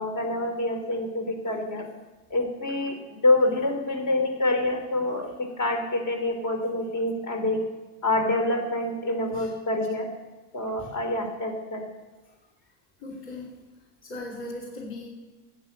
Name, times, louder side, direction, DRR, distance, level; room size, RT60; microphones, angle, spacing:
voice 1, 0.0-1.8 2.3-5.3 5.6-7.6 8.0-10.1 10.5-11.8, left 2 dB, 40° left, 3 dB, 3.3 m, -26 dB
voice 2, 13.0-13.5 14.0-15.1, left 2 dB, 25° left, -3 dB, 2.8 m, -38 dB
12.5 x 8.5 x 7.3 m, 1.1 s
supercardioid pair, 115°, 47 cm